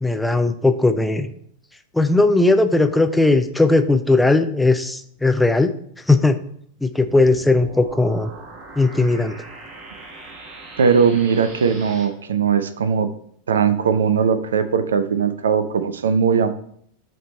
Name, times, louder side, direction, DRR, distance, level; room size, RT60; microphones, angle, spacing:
voice 1, 0.0-1.3 1.9-5.7 6.1-6.4 6.8-8.3 8.7-9.4, left 2 dB, 5° left, 9 dB, 0.4 m, -17 dB
sound 1, 7.1-12.1, right 2 dB, 40° right, 1.4 m, -40 dB
voice 2, 10.8-13.1 13.5-16.5, right 6 dB, 65° right, 12 dB, 0.4 m, -19 dB
7.7 x 3.4 x 4.2 m, 0.66 s
figure-of-eight pair, 90°, 0 cm